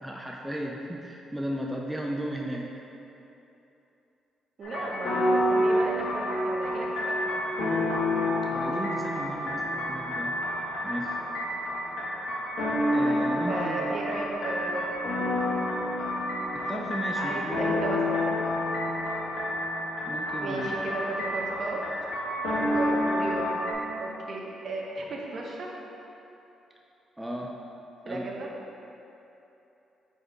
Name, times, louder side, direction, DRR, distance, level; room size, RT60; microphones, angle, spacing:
voice 1, 0.0-2.7 8.4-10.4 10.8-11.2 12.9-14.0 16.5-17.7 20.1-20.7 27.2-27.6 28.1-28.3, right 1 dB, 5° right, -1 dB, 0.5 m, -35 dB
sound 1, 4.6-23.7, left 1 dB, 75° left, 1.3 m, -29 dB
voice 2, 4.6-7.3 13.0-13.2 13.5-14.9 16.7-16.8 17.2-18.0 20.4-21.8 22.6-23.6 24.0-25.7 28.0-28.5, right 2 dB, 50° right, -2 dB, 0.9 m, -34 dB
4.9 x 4.3 x 4.6 m, 3.0 s
cardioid pair, 90°, 0 cm